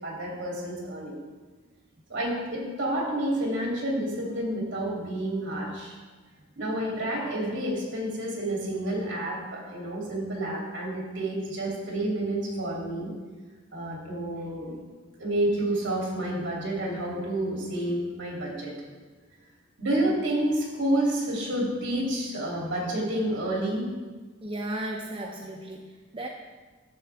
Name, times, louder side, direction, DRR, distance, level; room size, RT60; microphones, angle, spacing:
voice 1, 0.0-1.2 2.1-6.0 6.6-13.1 13.7-14.8 15.2-18.7 19.8-23.9 25.2-25.3, right 1 dB, 65° right, -3 dB, 2.9 m, -29 dB
voice 2, 24.4-26.3, right 1 dB, 25° right, 0 dB, 0.6 m, -35 dB
10.5 x 7.7 x 3.5 m, 1.3 s
head